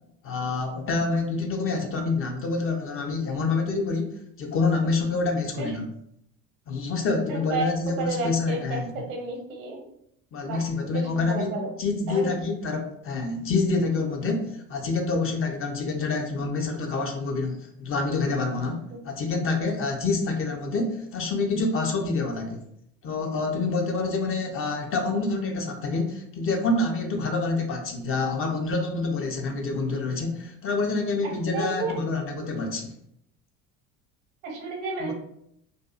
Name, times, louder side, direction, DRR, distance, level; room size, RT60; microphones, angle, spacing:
voice 1, 0.2-5.8 6.7-8.9 10.3-11.5 11.8-18.8 19.0-22.7 23.0-32.9 35.0-35.1, left 3 dB, 35° left, 3 dB, 0.5 m, -27 dB
voice 2, 7.3-9.8 10.4-11.7 12.1-12.3 18.9-19.0 31.2-32.0 34.4-35.1, right 3 dB, 75° right, 1 dB, 0.9 m, -32 dB
2.6 x 2.3 x 2.3 m, 0.73 s
hypercardioid pair, 65°, 41 cm